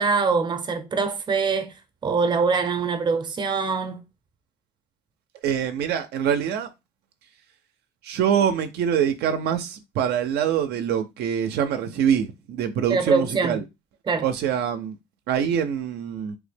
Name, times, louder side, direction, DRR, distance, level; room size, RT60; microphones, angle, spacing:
voice 1, 0.0-1.7 2.0-4.0 12.9-13.6 14.1-14.3, right 4 dB, 25° right, 0.6 m, -23 dB
voice 2, 5.4-6.7 8.0-13.6 14.2-15.0 15.3-16.4, right 8 dB, 75° right, 0.4 m, -24 dB
3.2 x 2.1 x 3.3 m
cardioid pair, 110°, 17 cm